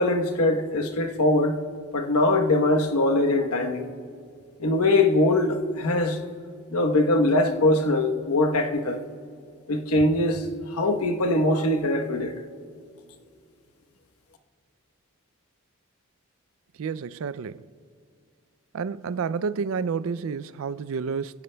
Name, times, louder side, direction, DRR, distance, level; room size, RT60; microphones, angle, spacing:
voice 1, 0.0-1.6 1.9-3.9 4.6-6.2 6.7-9.0 9.7-12.4, left 2 dB, 85° left, 1.1 m, -22 dB
voice 2, 16.8-17.6 18.7-21.4, right 5 dB, 65° right, 0.4 m, -30 dB
25.5 x 16.0 x 2.3 m
head